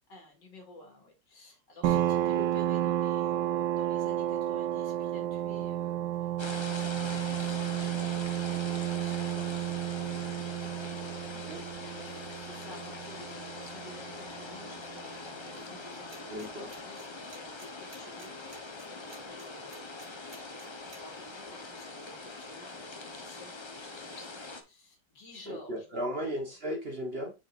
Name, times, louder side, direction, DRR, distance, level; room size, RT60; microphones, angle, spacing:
voice 1, 0.1-9.7 10.8-16.1 16.4-19.9 21.0-26.3, left 1 dB, 75° left, 2.7 m, -52 dB
sound 1, 1.8-15.1, right 13 dB, 80° right, 1.3 m, -32 dB
sound 2, 6.4-24.6, left 3 dB, 35° left, 0.4 m, -42 dB
sound 3, 16.1-16.4 16.7-21.0, right 2 dB, 60° right, 3.6 m, -52 dB
voice 2, 16.3-16.7 25.4-27.3, equal, 35° right, 1.3 m, -35 dB
6.7 x 6.4 x 2.5 m
omnidirectional pair, 1.9 m